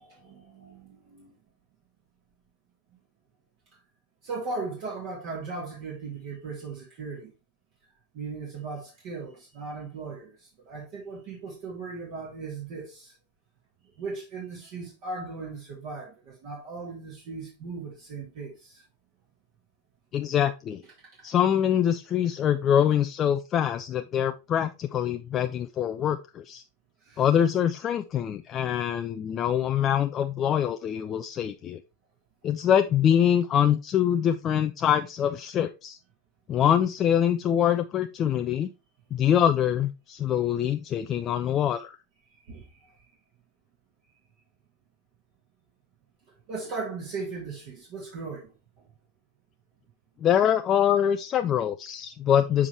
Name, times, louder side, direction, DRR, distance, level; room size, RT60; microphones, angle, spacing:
voice 1, 0.0-1.4 4.2-7.3 8.1-13.1 14.0-18.8 27.0-27.2 42.3-43.0 46.5-48.5 48.8-48.9, right 4 dB, 45° right, 2.1 m, -38 dB
voice 2, 20.1-20.8 21.2-26.6 27.2-31.8 32.4-36.0 36.5-38.7 39.1-42.0 50.2-52.7, left 9 dB, 30° left, 0.3 m, -24 dB
7.0 x 4.9 x 3.2 m
figure-of-eight pair, 90°, 0 cm